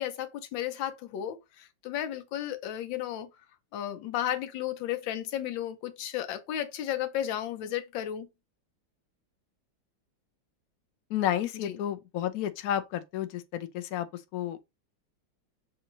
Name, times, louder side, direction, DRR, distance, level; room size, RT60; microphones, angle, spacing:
voice 1, 0.0-3.3 3.7-8.3 11.6-11.8, left 11 dB, 85° left, 1.4 m, -33 dB
voice 2, 11.1-14.1 14.3-14.6, left 11 dB, 70° left, 0.9 m, -31 dB
6.4 x 2.6 x 2.9 m
omnidirectional pair, 2.0 m